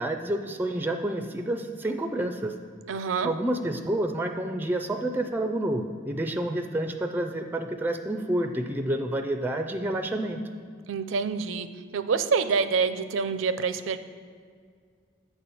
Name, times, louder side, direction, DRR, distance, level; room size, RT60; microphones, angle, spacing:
voice 1, 0.0-2.5 3.2-10.4, right 1 dB, 10° right, 5 dB, 0.4 m, -29 dB
voice 2, 2.9-3.3 10.9-11.7 11.9-14.0, right 5 dB, 70° right, 11 dB, 0.5 m, -26 dB
8.0 x 4.2 x 7.1 m, 2.1 s
head